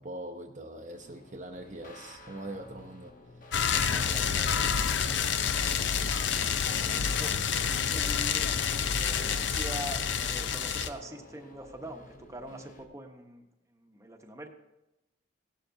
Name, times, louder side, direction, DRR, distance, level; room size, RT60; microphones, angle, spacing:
voice 1, 0.0-4.9, right 1 dB, 40° right, 4 dB, 0.6 m, -43 dB
sound 1, 0.9-12.9, left 2 dB, 45° left, 1.0 m, -51 dB
sound 2, 3.5-10.9, left 7 dB, 70° left, 0.6 m, -28 dB
voice 2, 5.9-14.5, right 1 dB, 15° right, 4 dB, 0.8 m, -44 dB
16.5 x 11.5 x 2.7 m, 0.95 s
head